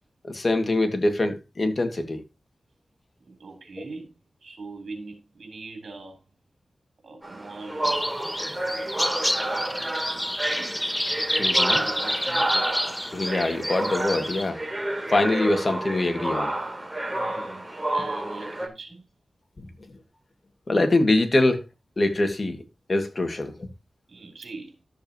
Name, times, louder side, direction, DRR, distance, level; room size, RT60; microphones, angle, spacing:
voice 1, 0.2-2.2 11.4-11.8 13.1-14.6 15.1-16.5 17.4-17.5 19.6-19.7 20.7-21.6 22.0-22.6 22.9-23.7, left 2 dB, 45° left, 2.0 m, -24 dB
voice 2, 3.2-4.1 4.4-6.2 7.0-8.0 11.7-12.7 17.0-19.1 24.1-24.8, right 3 dB, 70° right, 3.5 m, -41 dB
sound 1, 7.2-18.7, right 1 dB, 20° right, 3.1 m, -30 dB
sound 2, 7.8-14.4, equal, 5° left, 0.7 m, -28 dB
12.5 x 7.3 x 2.9 m
cardioid pair, 55°, 0 cm